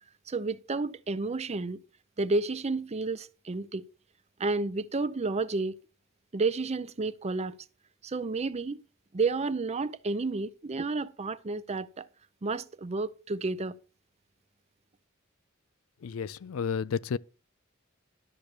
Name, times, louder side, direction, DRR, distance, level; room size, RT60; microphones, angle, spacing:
voice 1, 0.3-1.8 2.2-3.9 4.4-5.7 6.3-7.6 8.0-8.8 9.1-12.1 12.4-13.8, right 3 dB, 30° right, 0.6 m, -31 dB
voice 2, 16.0-17.2, left 6 dB, 75° left, 0.4 m, -31 dB
12.0 x 6.6 x 4.6 m
head